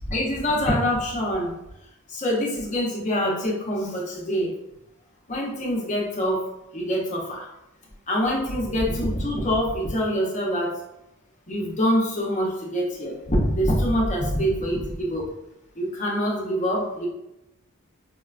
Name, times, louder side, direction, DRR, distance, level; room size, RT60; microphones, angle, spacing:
voice 1, 0.0-1.6 2.1-4.5 5.3-6.5 6.7-7.5 8.1-10.8 11.5-15.3 15.8-17.1, equal, 35° left, -3 dB, 0.7 m, -25 dB
5.0 x 2.1 x 2.4 m, 0.90 s
head